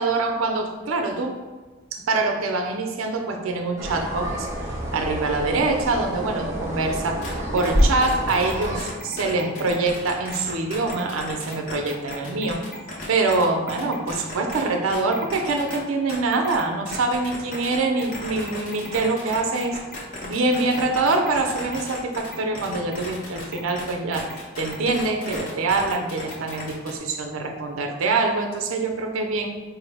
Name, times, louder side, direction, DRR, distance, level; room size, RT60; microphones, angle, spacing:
voice 1, 0.0-1.4 1.9-12.6 13.1-19.8 20.2-29.6, right 3 dB, 90° right, 3 dB, 0.5 m, -25 dB
sound 1, 3.8-8.8, equal, 15° right, 0.4 m, -27 dB
sound 2, 7.2-7.3 7.6-14.6 14.9-15.8 16.1-27.0, left 2 dB, 40° left, 0.7 m, -36 dB
4.4 x 2.0 x 3.3 m, 1.3 s
head